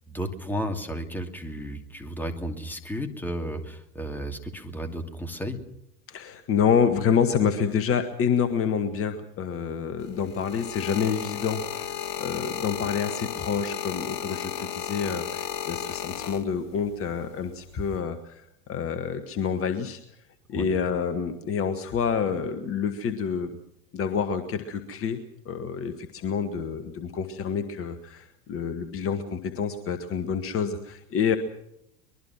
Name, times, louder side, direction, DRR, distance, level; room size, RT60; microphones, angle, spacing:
voice 1, 0.1-5.6 20.5-20.7, equal, 5° left, 6 dB, 2.6 m, -33 dB
voice 2, 6.1-20.0 20.5-23.6 23.9-25.2 25.4-31.4, left 7 dB, 30° left, 9 dB, 1.7 m, -28 dB
sound 1, 10.0-16.9 17.7-18.0, left 10 dB, 55° left, 2.2 m, -34 dB
24.0 x 21.5 x 6.1 m, 0.78 s
figure-of-eight pair, 85°, 47 cm